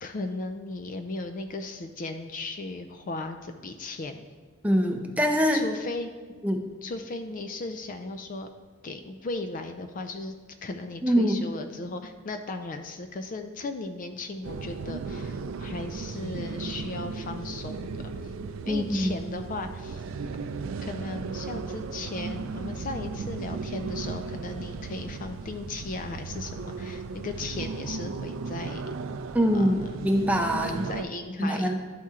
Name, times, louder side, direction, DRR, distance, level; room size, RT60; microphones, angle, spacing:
voice 1, 0.0-4.3 5.5-6.1 6.8-8.5 8.8-10.3 10.6-18.3 18.7-20.0 20.8-28.9 29.5-30.0 30.8-31.7, left 2 dB, 40° left, 8 dB, 0.4 m, -36 dB
voice 2, 4.6-5.6 6.4-6.6 11.0-11.4 18.7-19.1 29.3-30.8 31.4-31.7, equal, 5° right, 2 dB, 0.6 m, -24 dB
sound 1, 14.4-31.0, right 4 dB, 80° right, 0.4 m, -36 dB
12.0 x 4.3 x 3.6 m, 1.5 s
head